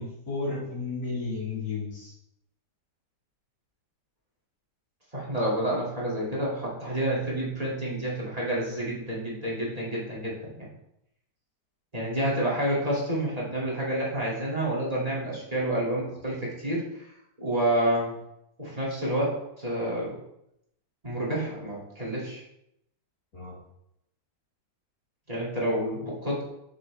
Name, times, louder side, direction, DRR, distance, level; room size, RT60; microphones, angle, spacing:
voice 1, 0.0-2.1 23.3-23.6, left 3 dB, 55° left, -8 dB, 3.8 m, -33 dB
voice 2, 5.1-10.7 11.9-17.1 17.4-18.2 18.6-20.2 21.0-22.4 25.3-26.4, right 1 dB, 20° right, -5 dB, 2.2 m, -29 dB
7.6 x 6.2 x 3.2 m, 0.81 s
omnidirectional pair, 1.9 m